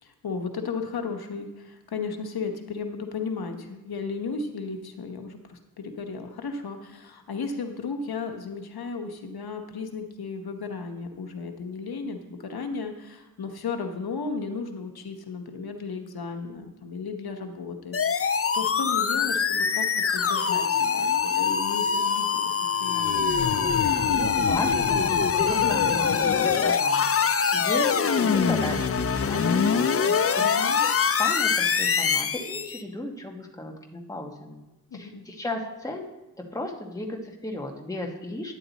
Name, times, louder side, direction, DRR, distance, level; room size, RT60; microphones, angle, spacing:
voice 1, 0.0-23.3 30.4-30.9 34.9-35.3, left 4 dB, 85° left, 5 dB, 1.0 m, -35 dB
sound 1, 17.9-32.8, left 6 dB, 40° left, 0.5 m, -23 dB
voice 2, 23.8-30.4 30.8-34.6 34.9-36.1 36.4-38.6, left 1 dB, 10° left, 1 dB, 1.2 m, -35 dB
9.7 x 9.6 x 4.0 m, 1.0 s
wide cardioid pair, 120°, 36 cm